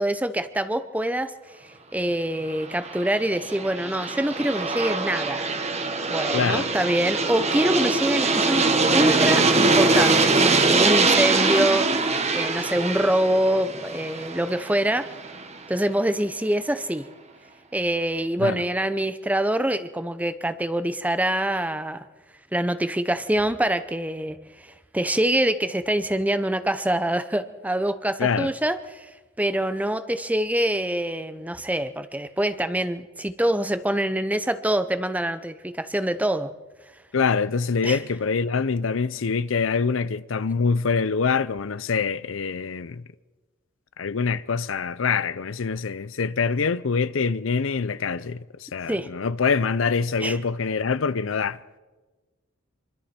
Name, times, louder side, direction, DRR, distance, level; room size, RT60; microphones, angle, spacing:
voice 1, 0.0-1.3 1.9-5.5 6.1-15.1 15.7-17.0 17.7-22.1 22.5-24.4 24.9-29.1 29.4-36.5 37.8-38.0 48.9-49.1 50.2-50.4, right 1 dB, 5° right, 0.8 m, -25 dB
Aircraft, 2.6-15.4, right 3 dB, 35° right, 1.5 m, -23 dB
voice 2, 6.3-6.7 18.4-18.6 28.2-28.5 37.1-43.0 44.0-51.6, left 5 dB, 70° left, 0.6 m, -25 dB
25.5 x 24.5 x 4.4 m
head